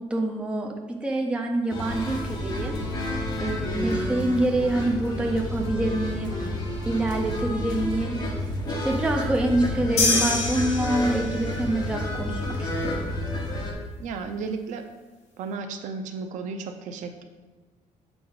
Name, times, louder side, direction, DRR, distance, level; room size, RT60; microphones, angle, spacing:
voice 1, 0.0-2.8 3.4-6.3 6.9-8.2 8.7-13.0, right 1 dB, 10° right, 1 dB, 0.6 m, -26 dB
sound 1, 1.7-13.7, left 1 dB, 30° left, 1.1 m, -30 dB
sound 2, 10.0-11.5, left 3 dB, 55° left, 1.6 m, -25 dB
voice 2, 14.0-14.8 15.4-17.2, right 4 dB, 75° right, 7 dB, 0.6 m, -33 dB
7.0 x 4.8 x 3.9 m, 1.3 s
cardioid pair, 165°, 13 cm